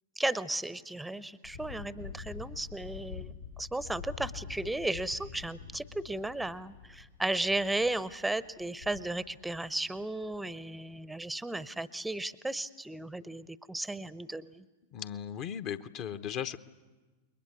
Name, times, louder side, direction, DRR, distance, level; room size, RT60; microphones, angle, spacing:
voice 1, 0.2-3.3 3.6-14.6, right 2 dB, 5° right, 16 dB, 0.7 m, -35 dB
sound 1, 1.4-10.0 10.2-10.4, left 6 dB, 85° left, 5.7 m, -46 dB
voice 2, 14.9-16.6, left 9 dB, 40° left, 11 dB, 0.9 m, -37 dB
29.5 x 21.5 x 8.4 m, 1.3 s
figure-of-eight pair, 90°, 0 cm